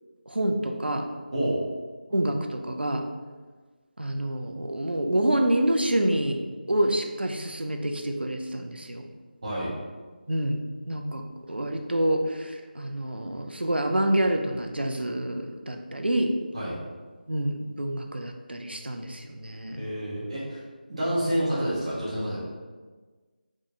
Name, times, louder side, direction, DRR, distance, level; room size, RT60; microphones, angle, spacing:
voice 1, 0.3-1.1 2.1-3.1 4.0-9.1 10.3-10.6 10.9-11.2 11.5-16.3 17.3-19.9, right 1 dB, 90° right, 4 dB, 0.4 m, -27 dB
voice 2, 1.3-1.6 9.4-9.7 16.5-16.8 19.8-20.6 20.9-22.4, right 1 dB, 40° right, -8 dB, 1.2 m, -28 dB
3.5 x 3.1 x 2.5 m, 1.4 s
figure-of-eight pair, 165°, 5 cm